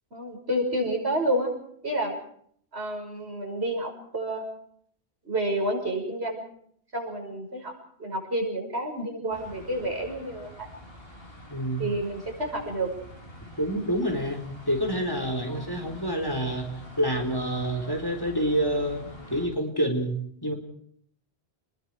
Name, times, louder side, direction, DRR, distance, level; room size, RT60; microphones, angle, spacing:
voice 1, 0.1-1.5 1.8-2.2 2.7-4.5 5.2-6.4 6.9-7.7 8.0-10.7 11.8-12.9 15.5-15.7, right 1 dB, 75° right, 2 dB, 6.3 m, -29 dB
sound 1, 9.3-19.5, equal, 60° left, 6.4 m, -46 dB
voice 2, 11.5-11.8 13.6-19.0 19.3-20.2 20.4-20.5, equal, 20° left, 4 dB, 4.1 m, -27 dB
29.0 x 21.0 x 4.9 m, 0.63 s
omnidirectional pair, 1.1 m